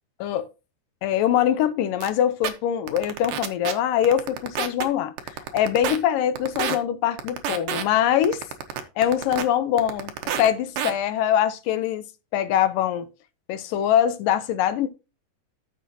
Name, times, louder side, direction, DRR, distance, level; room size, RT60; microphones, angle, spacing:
voice 1, 1.0-5.1 5.5-8.4 9.0-10.1 10.4-12.0 12.3-13.1 13.5-14.9, left 10 dB, 80° left, 2.3 m, -23 dB
sound 1, 2.0-2.1 2.4-2.5 2.9-3.7 4.0-4.8 5.2-6.0 6.4-6.8 7.2-7.8 8.2-9.4 9.8-10.5 10.8-10.9, right 9 dB, 75° right, 2.6 m, -28 dB
12.5 x 7.3 x 2.9 m
omnidirectional pair, 4.1 m